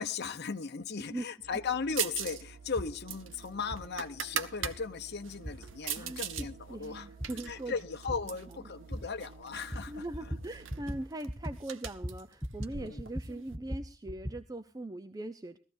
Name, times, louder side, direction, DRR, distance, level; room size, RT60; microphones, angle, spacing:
voice 1, 0.0-7.1 7.5-10.4 12.7-13.0, left 5 dB, 55° left, 8 dB, 0.8 m, -37 dB
sound 1, 1.4-11.1, right 4 dB, 50° right, 1.3 m, -53 dB
sound 2, 2.0-2.4 2.7-4.8 5.2-6.5 6.8-8.5 9.2-9.8 10.0-10.1 10.4-13.6, right 9 dB, 65° right, 0.9 m, -39 dB
sound 3, 2.8-2.9 3.7-3.8 4.6-4.7 5.4-5.5 6.4-6.5 7.2-7.3 8.1-8.2 8.9-9.0 9.7-9.8 10.1-10.4 10.7-11.0 11.3-11.6 11.8-12.7 13.0-14.4, equal, ahead, 0.9 m, -38 dB
voice 2, 6.7-7.7 8.5-8.6 9.9-15.6, right 1 dB, 20° right, 11 dB, 0.6 m, -41 dB
20.0 x 14.5 x 2.6 m, 0.36 s
head